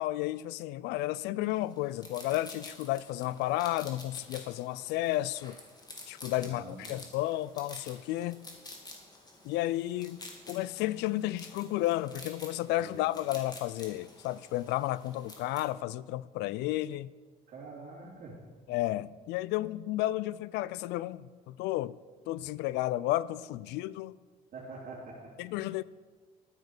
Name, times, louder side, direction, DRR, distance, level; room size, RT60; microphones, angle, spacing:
voice 1, 0.0-5.6 6.1-8.4 9.4-10.2 10.5-17.1 18.7-22.0 22.3-24.2 25.4-25.8, left 15 dB, 90° left, 0.4 m, -32 dB
sound 1, 1.5-15.7, left 2 dB, 25° left, 2.6 m, -50 dB
voice 2, 6.3-6.9 12.8-13.0 17.5-18.4 24.5-25.3, right 3 dB, 55° right, 3.2 m, -45 dB
11.5 x 9.6 x 6.0 m
cardioid pair, 110°, 17 cm